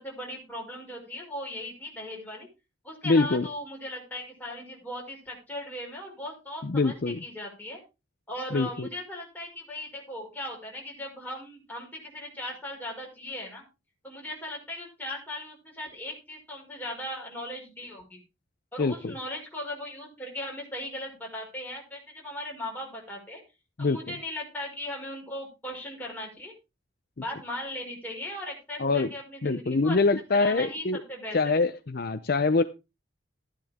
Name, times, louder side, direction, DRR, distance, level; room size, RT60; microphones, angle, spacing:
voice 1, 0.0-2.5 2.8-7.8 8.3-13.6 14.0-18.2 18.7-23.4 23.8-26.5 27.2-30.0 30.3-31.6, left 1 dB, 10° left, 5.5 m, -38 dB
voice 2, 3.0-3.5 6.6-7.2 8.5-8.9 18.8-19.1 23.8-24.0 28.8-29.1 29.4-31.0 31.3-32.6, left 3 dB, 55° left, 0.6 m, -24 dB
14.0 x 11.0 x 3.6 m
head